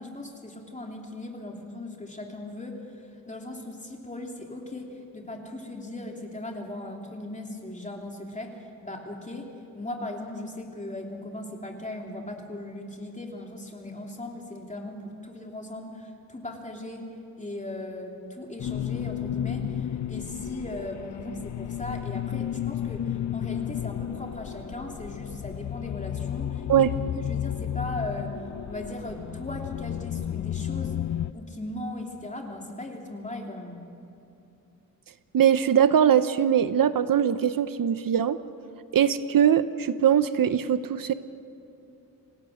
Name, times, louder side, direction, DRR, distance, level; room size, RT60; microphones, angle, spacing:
voice 1, 0.0-2.8 3.3-17.1 17.4-26.9 27.2-28.4 28.7-31.0 31.3-33.8, left 1 dB, 20° left, 1 dB, 3.0 m, -38 dB
sound 1, 18.6-31.3, left 10 dB, 55° left, 0.5 m, -32 dB
voice 2, 35.3-38.4 38.9-41.1, right 9 dB, 65° right, 13 dB, 0.8 m, -21 dB
27.0 x 18.0 x 6.5 m, 2.9 s
wide cardioid pair, 120°, 36 cm